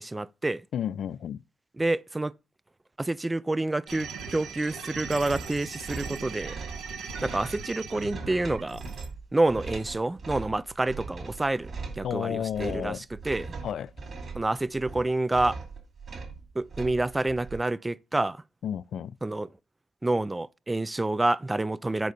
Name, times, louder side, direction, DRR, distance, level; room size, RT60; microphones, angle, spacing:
voice 1, 0.0-0.6 1.8-2.3 3.0-6.5 7.2-8.8 9.3-11.7 12.0-13.5 14.3-15.6 16.6-18.4 19.2-19.5 20.0-22.1, right 2 dB, 15° right, 0.4 m, -28 dB
voice 2, 0.7-1.4 12.0-13.0 13.6-13.9 18.6-19.1, left 9 dB, 65° left, 0.4 m, -31 dB
sound 1, 3.9-9.1, right 5 dB, 80° right, 1.5 m, -39 dB
sound 2, 5.2-17.6, right 4 dB, 45° right, 2.6 m, -40 dB
9.2 x 4.1 x 5.2 m
cardioid pair, 90°, 0 cm